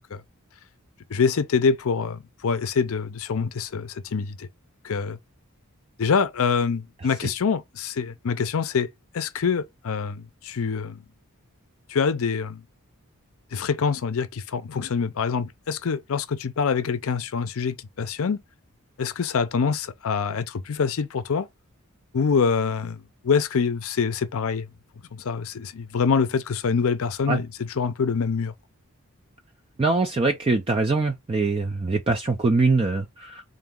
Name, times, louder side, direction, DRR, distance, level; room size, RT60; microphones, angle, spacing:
voice 1, 1.1-4.5 4.8-5.2 6.0-8.9 9.1-11.0 11.9-12.6 13.5-18.4 19.0-21.5 22.1-24.7 25.1-27.5 27.8-28.5, left 5 dB, 65° left, 0.5 m, -25 dB
voice 2, 29.8-33.4, right 3 dB, 25° right, 0.4 m, -23 dB
3.9 x 2.6 x 3.6 m
head